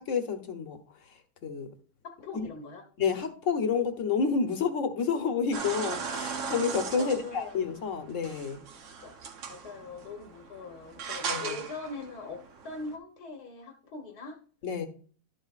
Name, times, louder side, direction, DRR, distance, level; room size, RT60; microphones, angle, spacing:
voice 1, 0.1-0.8 1.4-1.7 2.3-2.4 3.0-8.6 11.2-11.6 14.6-14.9, left 5 dB, 55° left, 7 dB, 1.3 m, -29 dB
voice 2, 2.0-2.9 7.0-7.7 9.0-9.2 9.5-14.4, left 3 dB, 80° left, 3 dB, 1.8 m, -42 dB
sound 1, 5.5-12.9, right 5 dB, 55° right, 1.1 m, -38 dB
12.0 x 7.9 x 2.5 m, 0.43 s
omnidirectional pair, 1.7 m